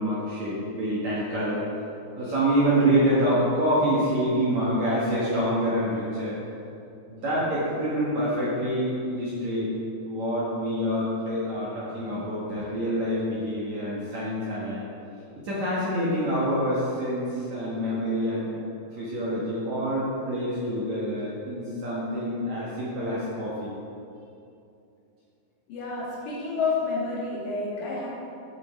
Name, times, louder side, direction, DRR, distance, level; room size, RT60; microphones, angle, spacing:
voice 1, 0.0-1.7 2.2-6.4 7.1-9.7 10.0-14.8 15.4-18.5 18.9-23.7, equal, 55° right, -8 dB, 2.2 m, -26 dB
voice 2, 25.7-28.1, left 4 dB, 70° left, -8 dB, 4.8 m, -29 dB
14.0 x 7.0 x 4.6 m, 2.7 s
omnidirectional pair, 5.3 m